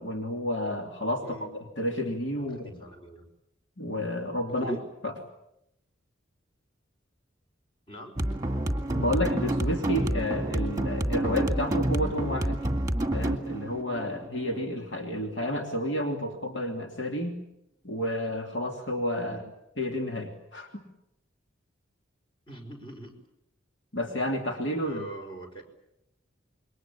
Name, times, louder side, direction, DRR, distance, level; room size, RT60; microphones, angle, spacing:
voice 1, 0.0-2.7 3.8-4.8 5.0-5.1 8.9-12.6 13.1-17.4 17.8-19.4 19.8-20.8 23.9-25.1, left 1 dB, 65° left, 2 dB, 3.1 m, -31 dB
voice 2, 1.2-1.5 2.4-3.3 4.5-4.9 7.9-8.1 19.3-19.4 22.5-23.2 24.8-25.6, right 1 dB, 25° left, 4 dB, 5.0 m, -41 dB
sound 1, 8.2-15.1, right 1 dB, 15° right, 2.0 m, -29 dB
27.5 x 22.5 x 8.7 m, 0.83 s
head